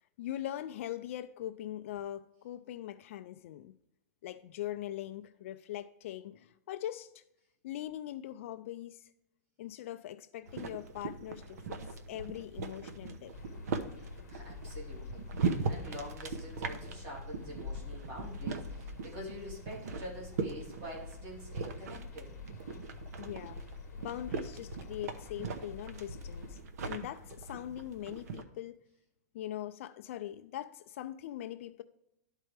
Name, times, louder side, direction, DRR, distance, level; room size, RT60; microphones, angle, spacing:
voice 1, 0.2-3.7 4.2-7.2 7.6-9.1 9.6-11.8 12.1-13.4 23.2-23.6 24.0-28.8 29.3-31.8, left 12 dB, 50° left, 0.4 m, -41 dB
sound 1, 10.5-28.4, right 4 dB, 70° right, 0.9 m, -40 dB
sound 2, 13.3-26.6, left 5 dB, 90° left, 0.9 m, -47 dB
voice 2, 13.6-22.3, equal, 35° right, 3.0 m, -46 dB
12.0 x 4.5 x 3.2 m
supercardioid pair, 165°, 9 cm